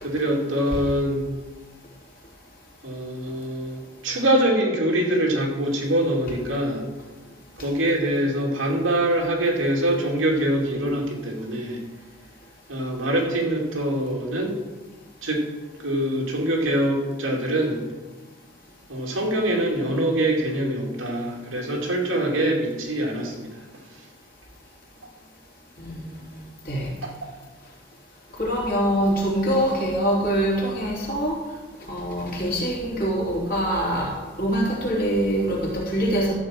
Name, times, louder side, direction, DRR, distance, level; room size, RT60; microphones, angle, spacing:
voice 1, 0.0-1.3 2.8-6.8 7.6-11.8 12.7-14.6 15.2-15.4 15.8-17.8 18.9-23.5 27.0-27.3, right 1 dB, 90° right, -1 dB, 2.4 m, -24 dB
voice 2, 25.8-26.2 26.6-26.9 28.4-31.4 31.9-34.1 34.4-36.3, equal, 45° left, -4 dB, 3.3 m, -24 dB
13.5 x 4.9 x 7.5 m, 1.3 s
head